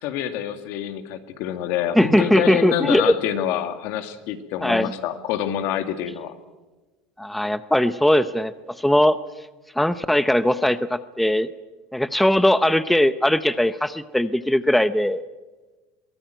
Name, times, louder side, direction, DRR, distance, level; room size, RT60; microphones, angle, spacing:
voice 1, 0.0-6.3, left 10 dB, 65° left, 8 dB, 2.1 m, -26 dB
voice 2, 2.0-3.1 4.6-4.9 7.2-8.5 8.8-9.2 9.8-11.5 11.9-15.2, left 1 dB, ahead, 13 dB, 0.7 m, -19 dB
23.0 x 17.0 x 9.1 m, 1.2 s
supercardioid pair, 125°, 4 cm